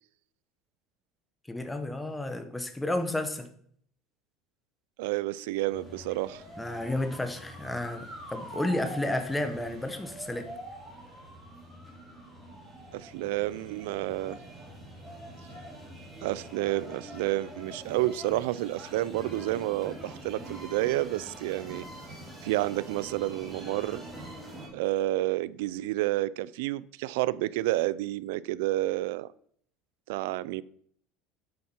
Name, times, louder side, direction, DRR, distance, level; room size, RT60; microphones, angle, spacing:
voice 1, 1.5-3.5 6.6-8.1 8.3-10.5, left 1 dB, 5° left, 0.9 m, -31 dB
voice 2, 5.0-6.4 12.9-14.4 16.2-21.8 22.4-24.0 24.7-29.3 30.1-30.6, right 16 dB, 85° right, 0.4 m, -30 dB
sound 1, 5.7-24.7, right 1 dB, 10° right, 2.9 m, -44 dB
9.3 x 7.6 x 4.4 m
cardioid pair, 165°, 0 cm